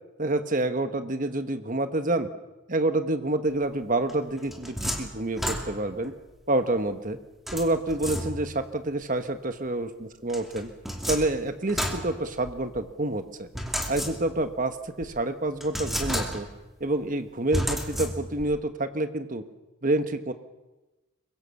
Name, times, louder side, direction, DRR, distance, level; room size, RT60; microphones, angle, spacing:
voice 1, 0.2-2.3 2.7-6.1 6.5-7.2 7.5-10.7 11.1-13.5 13.9-16.5 16.8-19.4 19.8-20.3, right 2 dB, 40° right, 9 dB, 1.3 m, -28 dB
Key Opening and Closing Flimsy Filing Cabinet Fast, 4.1-6.1 7.5-8.7 10.3-12.8 13.5-14.5 15.0-15.1 15.6-16.7 17.5-18.5, equal, ahead, 2.6 m, -32 dB
24.0 x 22.0 x 7.1 m, 1.1 s
head